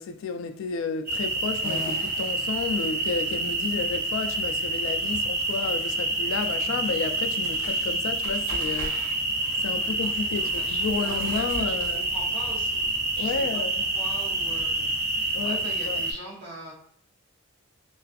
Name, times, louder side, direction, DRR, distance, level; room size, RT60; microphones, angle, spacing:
voice 1, 0.0-9.2 9.6-12.1 13.2-13.8 15.3-15.6 15.9-16.0, left 5 dB, 80° left, 0.3 m, -31 dB
sound 1, 1.1-16.1, right 2 dB, 45° right, 0.6 m, -28 dB
sound 2, 1.6-15.8, equal, 90° right, 1.1 m, -44 dB
voice 2, 9.8-12.8 13.1-13.6 13.9-16.7, right 1 dB, 60° right, 1.0 m, -42 dB
2.4 x 2.3 x 2.4 m
head